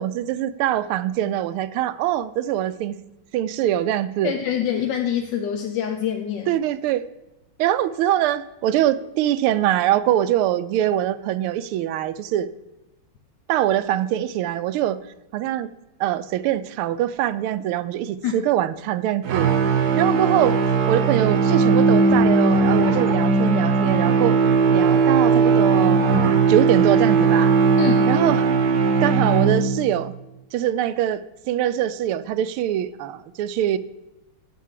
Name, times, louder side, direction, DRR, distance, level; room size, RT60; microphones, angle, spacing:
voice 1, 0.0-3.0 3.3-4.3 6.5-7.0 7.6-12.5 13.5-15.0 15.3-15.7 16.0-19.5 20.0-20.6 20.9-24.4 24.7-27.5 28.1-28.5 29.0-30.1 30.5-31.2 31.5-33.8, right 12 dB, 80° right, 14 dB, 1.4 m, -23 dB
voice 2, 4.2-6.5 18.2-18.4 27.8-28.1, left 9 dB, 65° left, 4 dB, 1.3 m, -25 dB
sound 1, 19.2-30.0, right 4 dB, 55° right, 1.2 m, -18 dB
8.4 x 7.3 x 7.4 m, 1.0 s
omnidirectional pair, 2.4 m